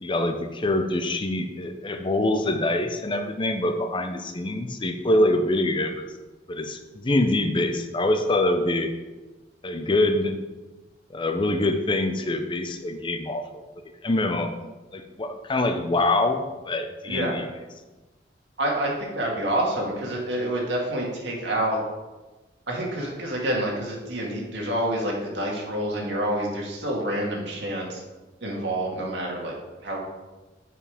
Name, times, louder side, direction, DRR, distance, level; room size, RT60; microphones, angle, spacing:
voice 1, 0.0-6.1 6.5-8.9 9.6-10.4 11.1-13.4 14.0-14.5 14.9-17.5, left 1 dB, 30° left, 7 dB, 0.6 m, -25 dB
voice 2, 17.1-17.4 18.6-21.8 22.7-28.0 28.4-29.5 29.8-30.2, right 1 dB, 75° right, -2 dB, 2.1 m, -28 dB
7.5 x 5.3 x 4.9 m, 1.2 s
head